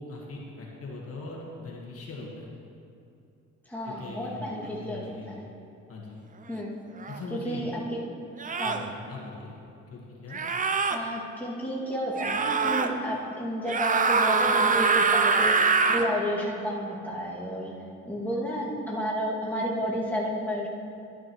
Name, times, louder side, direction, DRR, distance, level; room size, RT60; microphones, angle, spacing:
voice 1, 0.0-2.5 3.8-5.3 5.9-6.2 7.1-7.8 8.6-9.5 9.9-10.4, left 3 dB, 50° left, -3 dB, 1.7 m, -40 dB
voice 2, 3.7-5.4 6.5-6.7 7.3-8.0 8.6-8.9 10.9-15.5 15.9-17.7 18.0-20.7, equal, 5° left, -7 dB, 2.3 m, -31 dB
sound 1, 7.0-7.2 8.4-8.9 10.3-11.0 12.2-12.9 13.6-16.1, right 4 dB, 25° right, 0.6 m, -24 dB
12.0 x 9.8 x 3.1 m, 2.6 s
cardioid pair, 90°, 30 cm